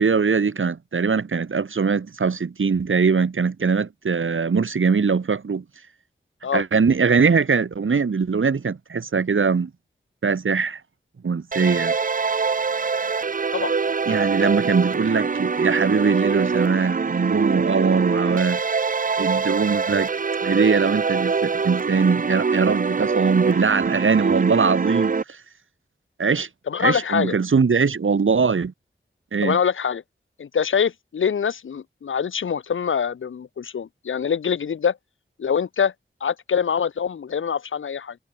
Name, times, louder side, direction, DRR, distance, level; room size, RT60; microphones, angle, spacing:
voice 1, 0.0-5.6 6.5-9.7 10.2-10.8 11.2-12.0 14.0-18.6 19.2-20.1 20.4-25.4 26.2-26.5 26.8-28.7 29.3-29.6, right 5 dB, 75° right, 0.8 m, -21 dB
sound 1, 11.5-25.2, right 5 dB, 40° right, 0.4 m, -24 dB
voice 2, 26.7-27.3 29.4-30.0 30.4-35.0 35.4-35.9 36.2-38.2, left 7 dB, 75° left, 0.4 m, -24 dB
wide cardioid pair, 55°, 21 cm